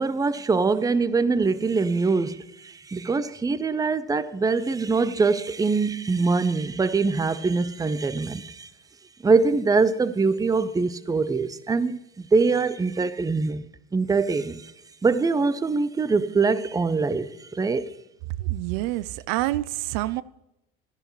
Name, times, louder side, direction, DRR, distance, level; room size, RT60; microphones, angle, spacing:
voice 1, 0.0-8.7 9.2-14.7 15.0-17.9, right 4 dB, 10° right, 0.6 m, -23 dB
voice 2, 18.4-20.2, right 17 dB, 75° right, 0.5 m, -27 dB
13.0 x 11.0 x 3.2 m
supercardioid pair, 90°, 29 cm